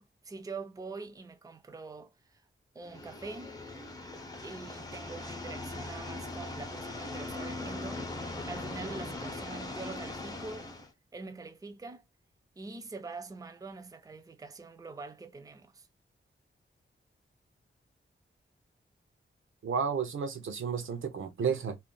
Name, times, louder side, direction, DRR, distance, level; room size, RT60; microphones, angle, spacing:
voice 1, 0.0-2.4 2.7-3.5 4.4-8.1 8.5-10.7 11.1-12.0 12.6-15.9, right 3 dB, 15° right, 0.4 m, -44 dB
sound 1, 2.8-10.9, left 2 dB, 20° left, 0.7 m, -40 dB
voice 2, 19.6-21.8, right 6 dB, 75° right, 0.7 m, -32 dB
3.3 x 2.5 x 2.2 m
wide cardioid pair, 120°, 20 cm